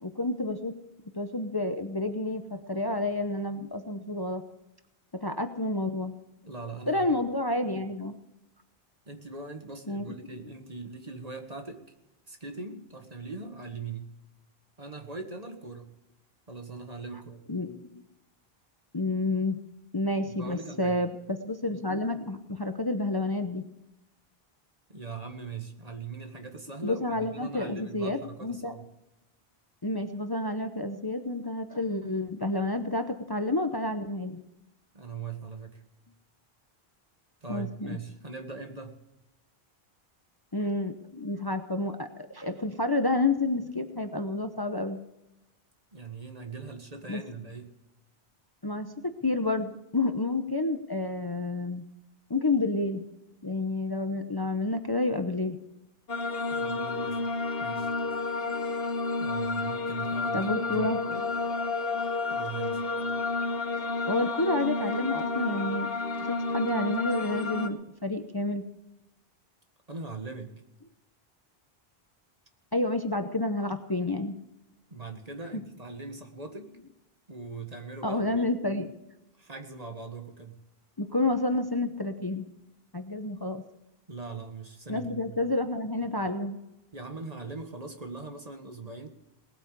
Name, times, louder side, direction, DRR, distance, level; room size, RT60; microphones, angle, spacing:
voice 1, 0.0-0.7 1.1-4.4 5.1-6.1 6.9-8.2 9.9-10.0 17.5-18.0 18.9-19.6 19.9-23.7 26.8-28.7 29.8-34.4 37.5-38.0 40.5-45.0 47.1-47.2 48.6-48.9 49.2-51.9 52.3-53.1 53.4-55.6 57.6-57.7 58.4-58.6 60.3-61.2 64.1-65.9 66.2-68.7 72.7-74.3 78.0-78.9 81.0-82.5 82.9-83.6 84.9-86.6, left 2 dB, 25° left, 7 dB, 0.9 m, -29 dB
voice 2, 6.4-7.1 9.1-11.8 12.3-14.1 14.8-15.9 16.5-17.4 20.3-21.0 24.9-28.9 34.9-35.8 37.4-39.0 45.9-47.7 56.5-57.2 57.6-57.9 59.2-61.3 62.3-62.8 69.9-70.5 74.9-76.7 77.3-78.5 79.4-80.6 84.1-85.4 86.9-89.1, right 4 dB, 40° right, 5 dB, 1.8 m, -40 dB
sound 1, 56.1-67.7, left 3 dB, 70° left, 1.5 m, -30 dB
19.0 x 8.9 x 6.8 m, 0.91 s
omnidirectional pair, 1.0 m